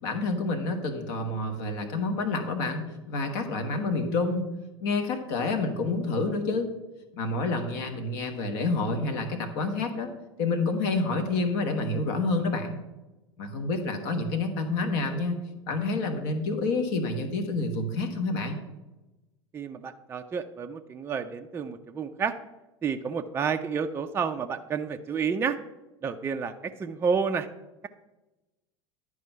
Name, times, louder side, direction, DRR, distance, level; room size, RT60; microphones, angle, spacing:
voice 1, 0.0-4.5 4.8-6.7 7.1-10.1 10.4-12.8 13.4-15.4 15.6-18.6, left 3 dB, 50° left, 5 dB, 1.2 m, -28 dB
voice 2, 19.5-22.3 22.8-25.6 26.0-27.5, right 6 dB, 15° right, 7 dB, 0.4 m, -30 dB
11.0 x 4.8 x 5.5 m, 1.1 s
figure-of-eight pair, 80°, 15 cm